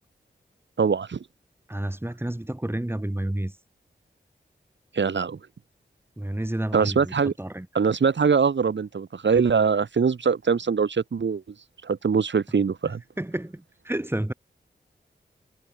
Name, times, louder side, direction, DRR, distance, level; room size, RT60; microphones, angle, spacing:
voice 1, 0.8-1.2 4.9-5.4 6.7-7.3 7.7-11.4 11.8-13.0, right 5 dB, 90° right, 4.8 m, -22 dB
voice 2, 1.7-3.6 6.2-7.7 13.2-14.3, right 1 dB, 10° right, 5.5 m, -30 dB
open air
wide cardioid pair, 85°, 18 cm